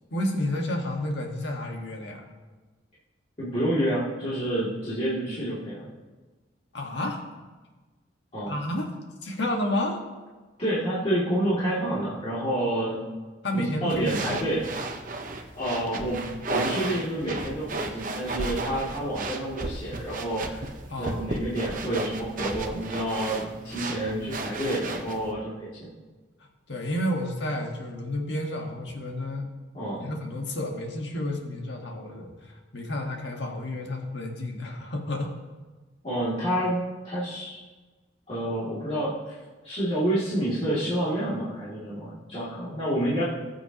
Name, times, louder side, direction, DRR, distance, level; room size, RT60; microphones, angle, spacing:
voice 1, 0.1-2.3 6.7-7.2 8.5-8.9 9.2-10.0 13.4-14.4 20.9-21.2 26.7-29.5 30.0-32.3 32.7-35.3, left 1 dB, 70° left, 2 dB, 1.6 m, -30 dB
voice 2, 3.4-5.9 8.3-8.5 10.6-13.1 13.5-14.7 15.5-20.6 21.0-25.9 29.7-30.1 36.0-37.6 38.3-39.3 39.6-43.2, right 1 dB, 35° left, -11 dB, 2.6 m, -28 dB
sound 1, 13.9-25.3, right 2 dB, 45° right, 0.9 m, -34 dB
19.5 x 7.4 x 3.0 m, 1.3 s
head